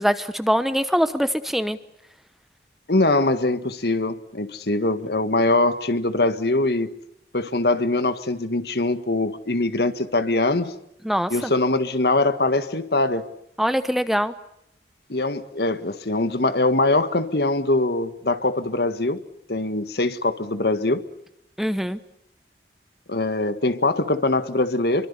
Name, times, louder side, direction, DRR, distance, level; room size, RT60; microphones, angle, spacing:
voice 1, 0.0-1.8 11.0-11.5 13.6-14.3 21.6-22.0, equal, ahead, 11 dB, 0.9 m, -23 dB
voice 2, 2.9-6.9 7.3-10.7 11.3-13.3 15.1-19.2 19.5-21.0 23.1-25.1, left 2 dB, 65° left, 11 dB, 1.7 m, -22 dB
27.5 x 24.0 x 6.9 m, 0.78 s
head